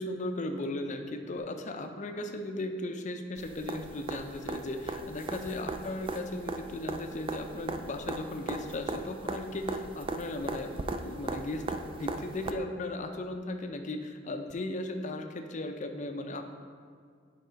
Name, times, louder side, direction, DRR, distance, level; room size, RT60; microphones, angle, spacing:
voice 1, 0.0-16.5, left 2 dB, 40° left, 6 dB, 0.5 m, -36 dB
sound 1, 3.4-12.5 14.5-14.6, right 3 dB, 30° right, 0.3 m, -38 dB
7.9 x 3.6 x 5.0 m, 2.1 s
head